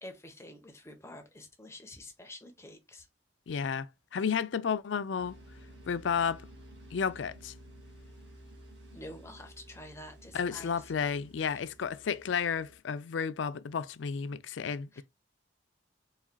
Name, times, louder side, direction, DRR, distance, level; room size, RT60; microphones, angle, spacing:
voice 1, 0.0-3.1 8.9-10.9 11.4-11.7 14.9-15.0, left 1 dB, 15° left, 1.0 m, -48 dB
voice 2, 3.5-5.4 5.9-6.4 6.9-7.5 10.3-15.0, left 6 dB, 70° left, 0.4 m, -32 dB
sound 1, 5.2-12.8, right 1 dB, 60° right, 2.2 m, -53 dB
4.7 x 4.2 x 2.3 m
head